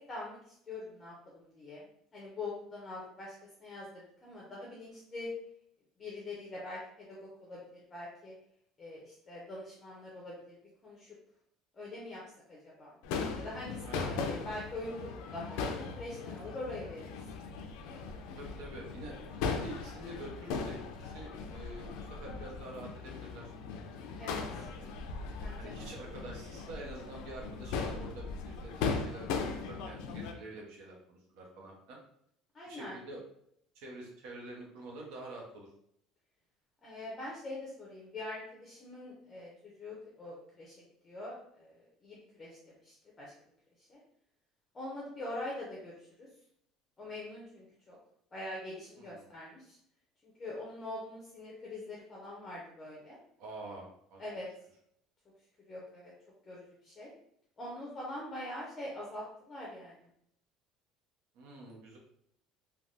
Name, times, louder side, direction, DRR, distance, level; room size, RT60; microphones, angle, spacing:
voice 1, 0.7-1.9 2.1-3.3 3.6-3.9 4.2-5.3 6.0-8.3 8.8-10.6 10.8-11.1 11.7-12.2 12.5-12.9 13.4-17.0 24.2-24.7 25.4-25.9 32.5-33.0 36.8-40.8 41.0-41.8 42.0-43.3 43.9-44.0 44.7-46.3 47.0-48.0 48.3-49.8 50.2-53.2 54.2-54.5 55.7-56.1 56.5-57.1 57.6-59.9, left 2 dB, 20° left, -4 dB, 0.6 m, -43 dB
Crowd / Fireworks, 13.0-30.3, left 5 dB, 80° left, 0.4 m, -38 dB
voice 2, 13.8-14.1 18.4-19.2 19.5-23.5 24.1-24.2 24.5-24.9 25.6-32.0 32.7-33.2 33.7-35.7 49.0-49.3 53.4-54.2 61.3-62.0, right 2 dB, 70° right, -1 dB, 0.9 m, -47 dB
3.3 x 2.2 x 2.6 m, 0.70 s
cardioid pair, 165°, 0 cm